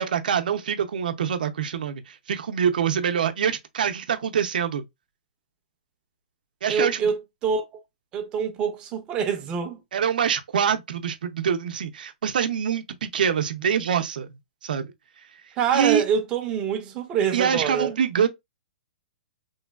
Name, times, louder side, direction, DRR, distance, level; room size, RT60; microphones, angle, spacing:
voice 1, 0.0-4.8 6.6-7.1 9.9-14.3 14.6-14.9 15.7-16.0 17.3-18.3, right 8 dB, 70° right, 0.6 m, -25 dB
voice 2, 6.7-7.8 8.1-9.8 15.6-18.0, right 6 dB, 20° right, 0.5 m, -26 dB
3.1 x 2.2 x 2.2 m
hypercardioid pair, 160°, 5 cm